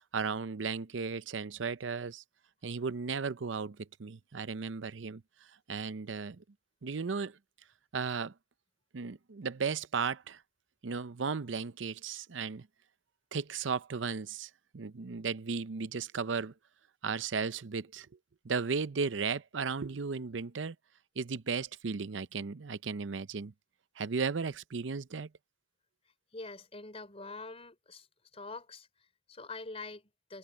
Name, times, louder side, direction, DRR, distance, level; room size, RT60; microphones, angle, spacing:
voice 1, 0.1-2.2 2.6-5.2 5.7-6.4 6.8-7.4 7.9-8.3 8.9-10.4 10.8-12.7 13.3-16.5 17.0-18.1 18.4-20.8 21.2-23.5 24.0-25.3, right 5 dB, 85° right, 0.6 m, -35 dB
voice 2, 26.3-28.1 28.3-30.4, left 3 dB, 35° left, 3.7 m, -45 dB
head